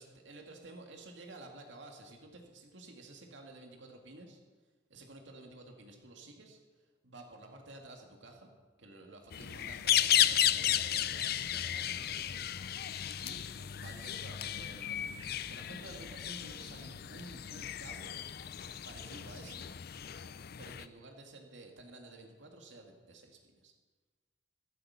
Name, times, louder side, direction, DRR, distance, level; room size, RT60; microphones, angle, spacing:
voice 1, 0.0-4.4 4.9-8.5 8.8-12.9 13.2-13.5 13.8-15.2 15.5-18.1 18.8-19.7 20.6-23.7, right 2 dB, 80° right, 2 dB, 2.2 m, -52 dB
sound 1, 9.3-20.9, left 11 dB, 60° left, 0.5 m, -34 dB
23.0 x 8.0 x 5.9 m, 1.4 s
head